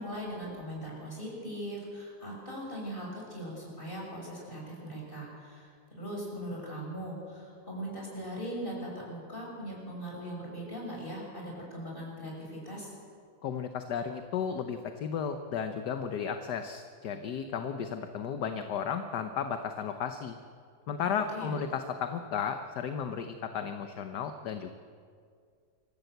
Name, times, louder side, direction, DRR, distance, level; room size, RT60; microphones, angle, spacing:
voice 1, 0.0-12.9 21.3-21.5, equal, 25° left, -2 dB, 6.6 m, -40 dB
voice 2, 13.4-20.4 20.9-24.7, left 7 dB, 65° left, 7 dB, 1.4 m, -34 dB
26.0 x 15.0 x 8.0 m, 2.2 s
omnidirectional pair, 2.1 m